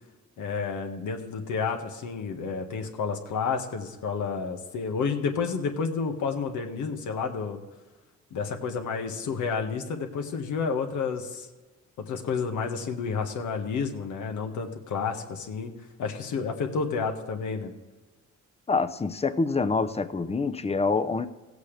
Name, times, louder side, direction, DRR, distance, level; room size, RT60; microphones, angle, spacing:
voice 1, 0.4-7.6 8.3-11.5 12.1-15.7 16.0-17.7, left 5 dB, 75° left, 1.6 m, -30 dB
voice 2, 18.7-21.3, left 4 dB, 20° left, 0.7 m, -26 dB
17.0 x 8.1 x 3.4 m
cardioid pair, 90°, 30 cm